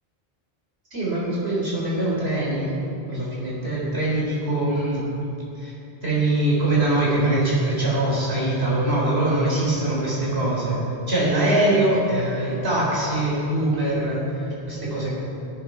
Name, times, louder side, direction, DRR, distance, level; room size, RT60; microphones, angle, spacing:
voice 1, 0.9-2.7 3.1-5.0 5.6-5.7 6.0-10.8 11.1-15.1, right 1 dB, 70° right, -6 dB, 4.7 m, -23 dB
17.5 x 12.0 x 4.9 m, 2.9 s
omnidirectional pair, 1.1 m